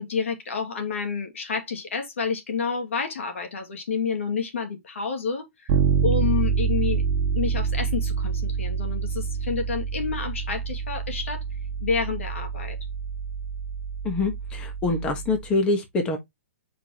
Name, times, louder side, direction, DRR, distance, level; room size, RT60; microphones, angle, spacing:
voice 1, 0.0-5.8 6.0-7.0 7.3-11.4 11.8-12.8, left 5 dB, 90° left, 2.4 m, -29 dB
Bass guitar, 5.7-15.4, right 6 dB, 30° right, 1.4 m, -27 dB
voice 2, 14.0-16.2, left 3 dB, 15° left, 1.5 m, -25 dB
6.2 x 5.0 x 3.0 m
hypercardioid pair, 165°, 7 cm